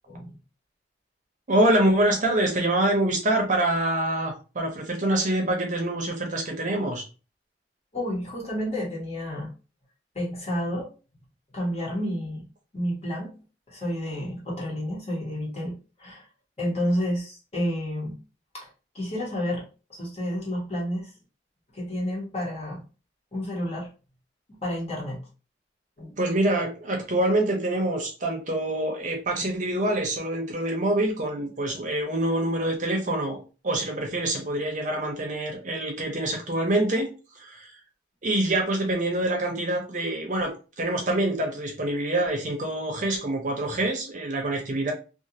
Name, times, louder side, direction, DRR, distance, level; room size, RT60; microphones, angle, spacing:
voice 1, 1.5-7.1 26.2-33.4 33.6-37.1 37.3-37.7 38.2-44.9, right 1 dB, 45° right, 1 dB, 0.7 m, -25 dB
voice 2, 7.9-9.5 10.1-10.9 11.5-12.4 12.7-13.4 13.7-16.3 16.6-18.2 18.5-19.6 19.9-21.1 21.7-22.8 23.3-23.9 24.5-25.3 26.0-26.2 29.4-29.5, equal, 35° left, -3 dB, 1.1 m, -30 dB
2.5 x 2.4 x 2.8 m, 0.33 s
head